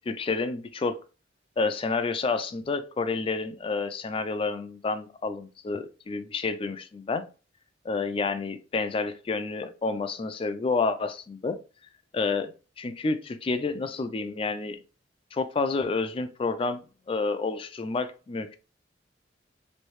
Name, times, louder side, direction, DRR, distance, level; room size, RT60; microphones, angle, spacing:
voice 1, 0.1-1.0 1.6-7.2 7.8-11.6 12.1-12.5 12.8-14.8 15.3-16.8 17.1-18.6, left 4 dB, 30° left, 0.3 m, -29 dB
3.1 x 2.6 x 3.0 m
head